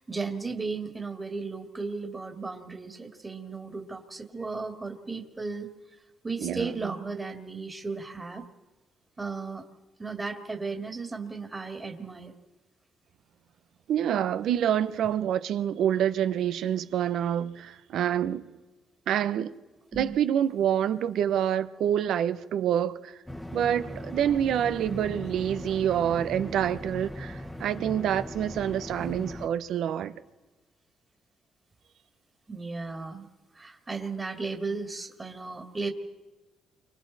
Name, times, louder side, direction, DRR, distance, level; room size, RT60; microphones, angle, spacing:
voice 1, 0.0-5.7 6.2-8.5 9.2-9.6 10.0-12.3 19.9-20.1 24.9-25.1 29.0-29.3 32.5-33.3 33.5-35.9, right 4 dB, 25° right, 2.2 m, -35 dB
voice 2, 6.4-6.9 13.9-18.5 19.1-19.5 20.0-23.1 23.5-30.1, right 10 dB, 75° right, 0.9 m, -27 dB
sound 1, 23.2-29.5, left 1 dB, 5° left, 1.3 m, -39 dB
29.0 x 25.0 x 4.2 m
cardioid pair, 90°, 0 cm